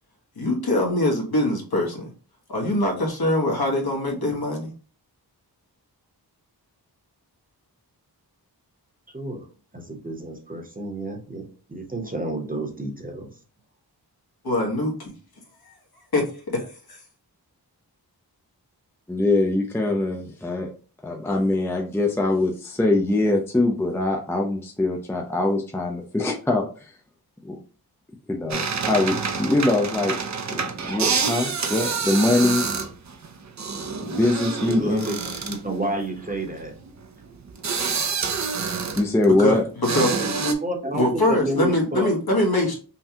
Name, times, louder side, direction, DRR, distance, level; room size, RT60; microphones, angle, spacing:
voice 1, 0.4-2.1 2.5-4.7 14.4-15.1 16.1-16.2 16.9-17.0 39.4-39.5 39.9-40.5 40.9-42.8, left 1 dB, 65° left, 0 dB, 1.3 m, -23 dB
voice 2, 9.1-9.4 9.7-13.3 34.6-35.2 35.4-36.7 40.1-42.1, right 1 dB, 20° right, 1 dB, 0.9 m, -30 dB
voice 3, 19.1-20.7 21.0-26.9 27.4-27.6 28.3-30.2 30.5-32.7 34.0-35.1 39.0-39.6, left 2 dB, 5° left, 1 dB, 0.5 m, -23 dB
sound 1, 28.5-39.4 39.8-40.5, right 5 dB, 45° right, 0.6 m, -28 dB
5.6 x 2.3 x 2.8 m, 0.39 s
wide cardioid pair, 95°, 40 cm